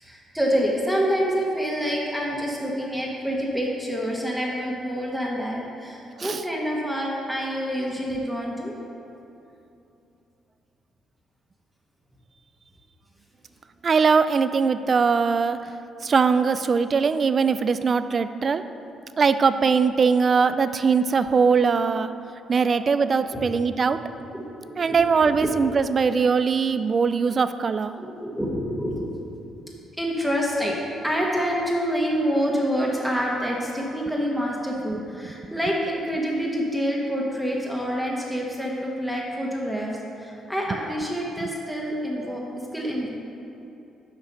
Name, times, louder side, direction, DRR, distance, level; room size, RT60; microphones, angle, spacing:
voice 1, 0.0-8.8 22.6-22.9 23.3-23.6 24.3-25.5 28.0-29.0 30.0-30.8 31.0-39.9 40.2-42.4 42.7-43.1, equal, ahead, -3 dB, 1.1 m, -27 dB
voice 2, 13.8-15.6 16.0-18.6 19.2-22.1 22.5-24.0 24.8-27.9, right 5 dB, 40° right, 12 dB, 0.3 m, -21 dB
6.5 x 5.0 x 6.6 m, 2.8 s
cardioid pair, 90°, 0 cm